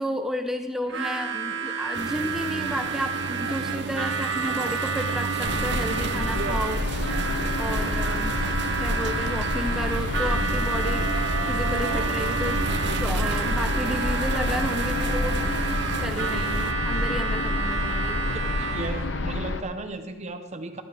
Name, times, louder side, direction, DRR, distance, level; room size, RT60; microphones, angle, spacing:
voice 1, 0.0-8.4 8.8-12.7 13.0-15.4 16.0-18.2, equal, ahead, 6 dB, 0.6 m, -32 dB
Harmonica, 0.9-19.1, right 5 dB, 75° right, 1.4 m, -31 dB
sound 1, 1.9-16.7, right 4 dB, 55° right, 0.5 m, -32 dB
sound 2, 5.5-19.6, left 2 dB, 65° left, 0.8 m, -28 dB
voice 2, 18.6-20.8, right 2 dB, 35° right, 7 dB, 0.9 m, -35 dB
14.0 x 14.0 x 3.5 m, 1.1 s
head